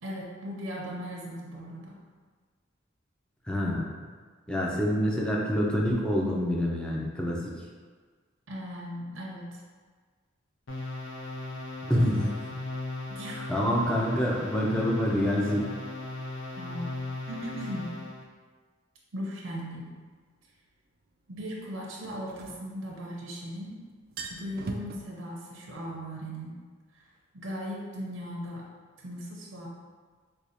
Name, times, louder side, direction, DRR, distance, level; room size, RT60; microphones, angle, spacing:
voice 1, 0.0-2.0 8.5-9.6 13.1-13.5 16.6-17.0 17.3-17.9 19.1-19.9 21.3-23.8 24.3-26.6 27.3-28.7 29.0-29.7, equal, 85° right, -3 dB, 0.6 m, -38 dB
voice 2, 3.5-3.9 4.5-7.4 11.9-12.3 13.5-15.6, equal, 5° left, -3 dB, 0.5 m, -26 dB
sound 1, 10.7-18.2, left 2 dB, 85° left, 0.7 m, -37 dB
sound 2, 19.6-19.7 22.0-23.3 23.6-23.7 24.0-25.0, right 3 dB, 50° right, 0.3 m, -39 dB
4.7 x 2.3 x 2.7 m, 1.5 s
head